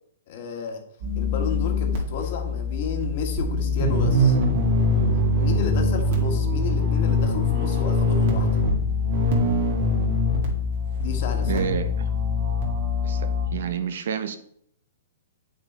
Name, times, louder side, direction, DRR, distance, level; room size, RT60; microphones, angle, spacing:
voice 1, 0.3-0.8 1.1-4.4 5.4-8.5 11.0-11.6, left 5 dB, 45° left, 4 dB, 1.8 m, -32 dB
sound 1, 1.0-13.5, left 2 dB, 50° right, 2.2 m, -23 dB
voice 2, 11.5-12.1 13.0-14.4, right 7 dB, 70° right, 9 dB, 1.0 m, -29 dB
8.5 x 6.4 x 4.4 m, 0.69 s
hypercardioid pair, 150°, 0 cm